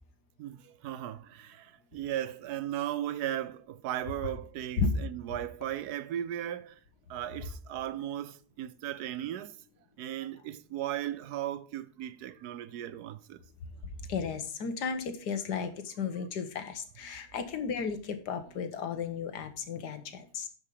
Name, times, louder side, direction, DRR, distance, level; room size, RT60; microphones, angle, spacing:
voice 1, 0.4-6.7 7.1-9.5 10.0-13.4, right 12 dB, 75° right, 1.1 m, -36 dB
voice 2, 14.0-20.5, left 5 dB, 80° left, 1.7 m, -34 dB
10.5 x 5.2 x 5.0 m
omnidirectional pair, 1.7 m